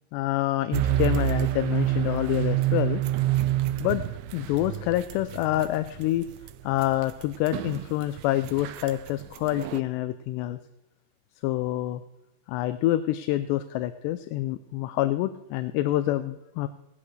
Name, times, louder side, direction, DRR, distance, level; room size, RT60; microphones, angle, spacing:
voice 1, 0.1-3.0 3.8-4.0 4.3-6.3 6.6-10.6 11.4-12.0 12.5-16.7, left 15 dB, 80° left, 11 dB, 2.6 m, -27 dB
sound 1, 0.7-9.8, right 13 dB, 80° right, 2.5 m, -28 dB
18.0 x 13.0 x 3.2 m, 0.97 s
omnidirectional pair, 5.1 m